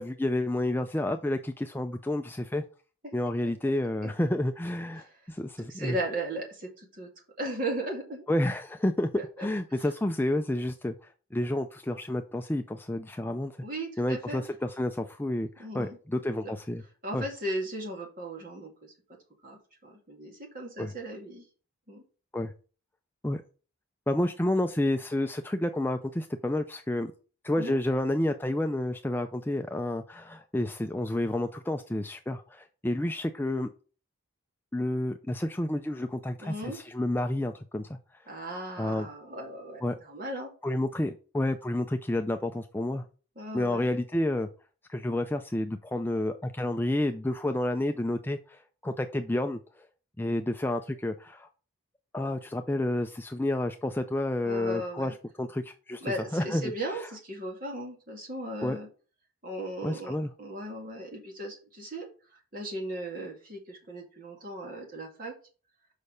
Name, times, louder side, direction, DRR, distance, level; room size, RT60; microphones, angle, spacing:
voice 1, 0.0-2.6 3.1-6.0 8.3-9.1 9.4-13.5 14.0-16.8 17.1-17.2 20.8-20.9 22.3-22.5 23.2-23.4 24.1-27.1 27.4-33.7 34.7-38.0 38.8-39.1 39.8-40.0 40.6-43.1 43.5-44.5 44.9-49.9 50.2-51.5 52.1-56.0 56.3-57.1 58.6-58.8 59.8-60.3, left 1 dB, 10° left, 6 dB, 0.3 m, -30 dB
voice 2, 5.7-7.1 7.4-8.2 9.2-9.5 13.6-14.4 15.6-16.0 17.0-18.9 19.4-21.4 21.9-22.0 27.6-27.8 36.4-36.8 38.3-40.5 43.4-43.9 54.4-55.1 56.0-58.9 59.4-62.1 62.5-65.3, right 1 dB, 40° right, 0 dB, 2.3 m, -37 dB
6.6 x 5.4 x 5.1 m, 0.37 s
head